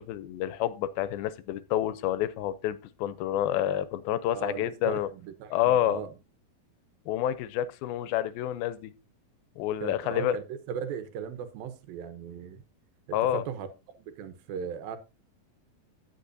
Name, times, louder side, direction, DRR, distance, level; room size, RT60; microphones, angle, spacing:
voice 1, 0.0-5.1 5.5-6.0 7.1-8.9 9.6-10.4 13.1-13.4, left 11 dB, 85° left, 2.5 m, -28 dB
voice 2, 4.3-6.1 9.8-12.6 13.1-13.7 14.1-15.0, right 7 dB, 80° right, 2.7 m, -37 dB
16.5 x 6.0 x 2.6 m
omnidirectional pair, 4.2 m